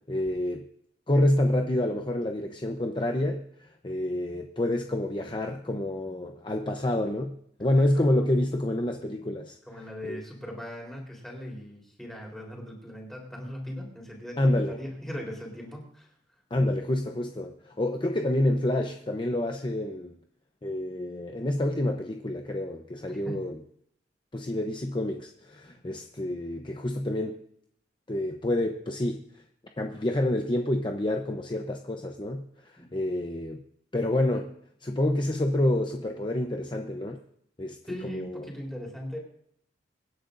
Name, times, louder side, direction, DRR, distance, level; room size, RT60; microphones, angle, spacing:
voice 1, 0.1-0.7 1.1-10.2 14.4-14.8 16.5-20.2 20.6-23.6 24.3-27.4 28.1-29.4 29.8-33.6 33.9-34.5 34.8-37.2 37.6-37.8 38.0-38.4, left 1 dB, 25° left, 4 dB, 0.8 m, -28 dB
voice 2, 7.7-8.3 9.7-16.1 23.1-23.4 32.8-32.9 37.9-39.2, equal, ahead, -1 dB, 3.9 m, -39 dB
24.5 x 10.5 x 2.6 m, 0.70 s
head